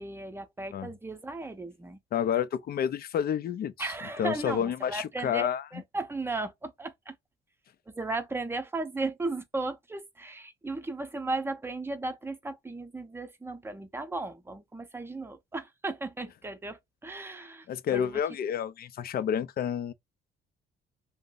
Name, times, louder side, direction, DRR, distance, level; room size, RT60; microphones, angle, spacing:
voice 1, 0.0-2.0 3.8-5.5 5.7-7.2 7.9-18.1, right 3 dB, 10° right, 0.6 m, -36 dB
voice 2, 2.1-3.9 4.2-5.7 17.7-19.9, left 8 dB, 50° left, 0.4 m, -29 dB
2.5 x 2.0 x 3.7 m
cardioid pair, 90°, 20 cm